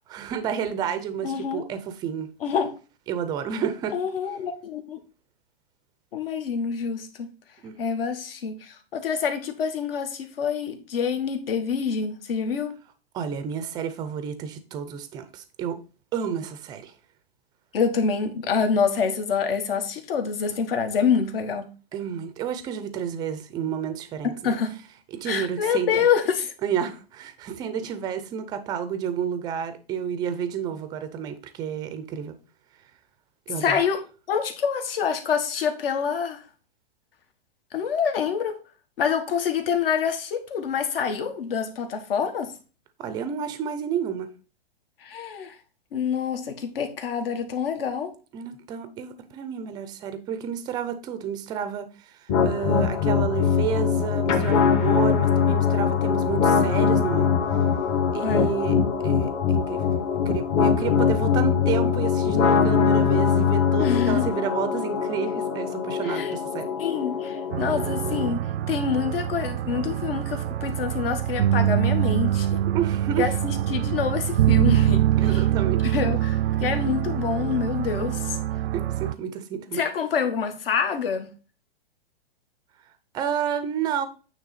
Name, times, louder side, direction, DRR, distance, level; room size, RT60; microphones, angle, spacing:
voice 1, 0.1-2.3 3.1-4.0 7.6-7.7 13.1-15.8 16.1-16.9 21.9-24.5 25.1-26.1 26.6-32.4 33.5-33.8 43.0-44.3 48.3-57.3 58.1-58.8 59.0-59.8 60.3-66.7 72.7-73.3 75.2-75.9 78.7-79.8 83.1-84.1, right 8 dB, 15° right, 0.5 m, -30 dB
voice 2, 1.2-1.6 2.4-2.7 3.9-5.0 6.1-7.3 7.8-12.7 17.7-21.7 24.2-24.7 25.2-26.5 33.6-34.0 34.3-36.4 37.7-38.5 39.0-42.5 45.0-45.6 45.9-48.1 58.2-58.5 63.8-64.3 66.0-66.3 66.8-68.4 68.7-72.6 73.1-75.0 75.9-78.4 79.7-81.3, left 6 dB, 65° left, 1.5 m, -26 dB
sound 1, 52.3-68.3, left 6 dB, 35° left, 1.1 m, -22 dB
sound 2, 67.5-79.1, right 12 dB, 85° right, 0.5 m, -24 dB
8.9 x 3.2 x 4.1 m
hypercardioid pair, 150°, 30 cm